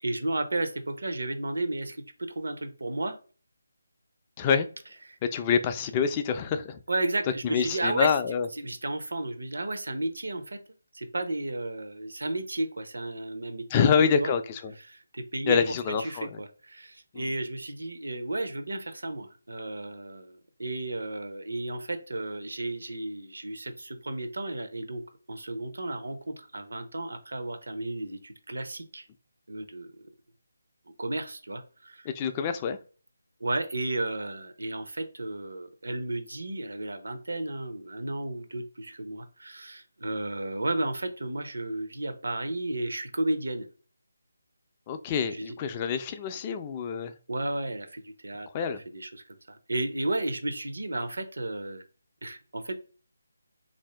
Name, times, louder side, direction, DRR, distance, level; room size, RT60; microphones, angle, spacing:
voice 1, 0.0-2.0 2.4-3.2 5.1-5.2 6.9-8.1 8.5-10.6 10.9-14.3 14.9-15.6 16.0-25.0 25.3-29.1 29.5-30.1 31.0-32.1 33.4-43.7 45.3-45.6 47.3-51.8 52.2-52.7, right 2 dB, 75° right, 8 dB, 0.8 m, -33 dB
voice 2, 5.3-6.8 7.4-8.5 13.7-14.7 15.5-16.4 17.1-17.3 32.1-32.8 44.9-47.1 48.5-48.8, left 6 dB, 20° left, 8 dB, 0.3 m, -26 dB
3.5 x 2.6 x 3.3 m, 0.38 s
figure-of-eight pair, 155°, 0 cm